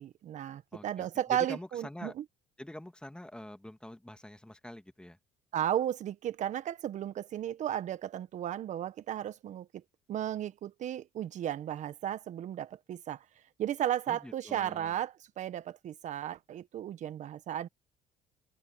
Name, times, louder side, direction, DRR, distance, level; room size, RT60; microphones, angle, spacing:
voice 1, 0.0-2.2 5.5-9.7 10.1-13.2 13.6-17.7, right 11 dB, 60° right, 1.4 m, -34 dB
voice 2, 0.7-2.1 2.6-5.2 14.1-15.0, left 1 dB, 5° left, 2.6 m, -45 dB
supercardioid pair, 70°, 14 cm